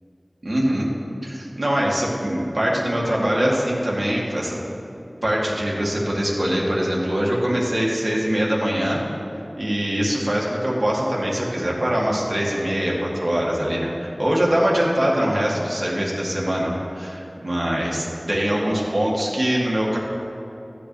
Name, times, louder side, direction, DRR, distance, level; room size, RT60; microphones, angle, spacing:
voice 1, 0.4-0.9 1.2-4.6 5.2-9.0 9.6-20.0, equal, 65° right, -4 dB, 2.1 m, -23 dB
14.0 x 8.3 x 3.3 m, 3.0 s
wide cardioid pair, 40°, 0 cm